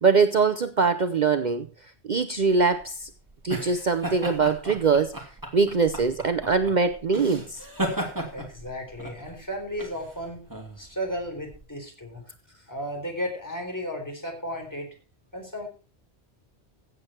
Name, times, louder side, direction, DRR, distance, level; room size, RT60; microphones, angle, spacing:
voice 1, 0.0-1.7 2.1-3.1 3.4-5.2 5.5-7.6, right 4 dB, 45° right, 8 dB, 0.8 m, -22 dB
sound 1, 2.4-11.6, right 1 dB, 20° right, 2.5 m, -35 dB
voice 2, 8.3-10.4 10.8-12.2 12.7-14.9 15.3-15.7, equal, 15° left, 2 dB, 3.7 m, -34 dB
15.5 x 7.8 x 4.4 m, 0.35 s
omnidirectional pair, 1.1 m